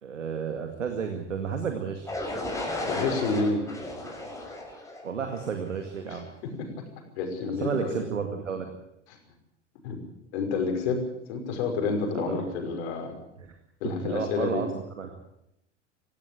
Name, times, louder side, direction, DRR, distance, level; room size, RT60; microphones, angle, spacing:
voice 1, 0.0-2.2 5.0-6.3 7.6-8.7 12.1-12.5 13.4-13.6 13.8-15.3, right 6 dB, 90° right, 5 dB, 2.2 m, -32 dB
sound 1, 2.1-6.0, left 1 dB, 10° left, 6.1 m, -35 dB
voice 2, 2.9-4.0 6.1-6.2 6.6-6.8 7.2-8.0 9.8-10.0 10.3-13.2 13.8-14.6, left 4 dB, 60° left, 4 dB, 5.8 m, -29 dB
17.5 x 16.0 x 9.3 m, 0.81 s
hypercardioid pair, 90°, 36 cm